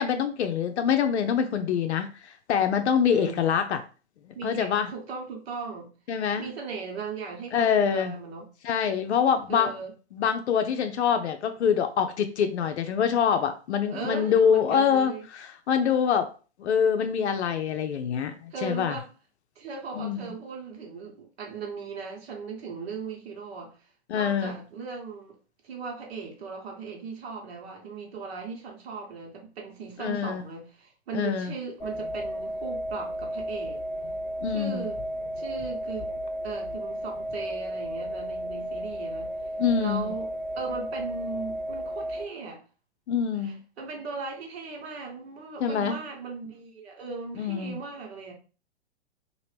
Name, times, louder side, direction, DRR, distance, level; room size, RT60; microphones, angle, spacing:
voice 1, 0.0-3.8 4.3-4.9 6.1-6.5 7.5-8.1 8.6-9.7 10.1-16.3 16.6-19.0 19.9-20.4 24.1-24.6 30.0-30.4 31.1-31.5 34.4-34.9 39.6-40.1 43.1-43.6 45.6-46.0 47.4-47.8, left 7 dB, 75° left, 0.5 m, -25 dB
voice 2, 3.1-3.5 4.3-5.9 6.4-8.5 9.5-9.9 13.9-15.3 18.5-19.1 19.6-25.4 25.6-33.8 34.5-35.0 35.4-36.1 36.4-39.3 39.8-40.3 40.5-42.6 43.4-48.3, right 5 dB, 60° right, 1.2 m, -38 dB
sound 1, 31.8-42.2, equal, 15° left, 1.0 m, -33 dB
2.8 x 2.5 x 3.3 m
hypercardioid pair, 115°, 34 cm